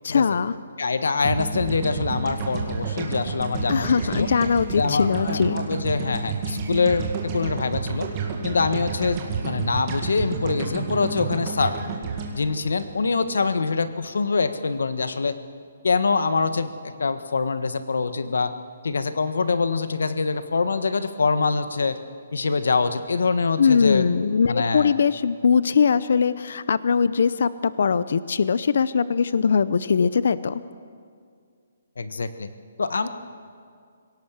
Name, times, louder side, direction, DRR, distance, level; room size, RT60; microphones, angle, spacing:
voice 1, 0.0-0.6 3.7-5.6 23.6-30.6, left 6 dB, 50° left, 16 dB, 0.6 m, -21 dB
voice 2, 0.8-4.3 4.8-8.1 8.4-11.8 12.3-15.4 15.8-18.5 18.8-22.0 22.3-24.1 24.5-24.9 32.0-32.5 32.8-33.1, left 4 dB, 90° left, 11 dB, 1.4 m, -24 dB
sound 1, 1.2-13.5, right 5 dB, 20° right, 1.9 m, -30 dB
25.5 x 17.0 x 7.5 m, 2.2 s
hypercardioid pair, 180°, 0 cm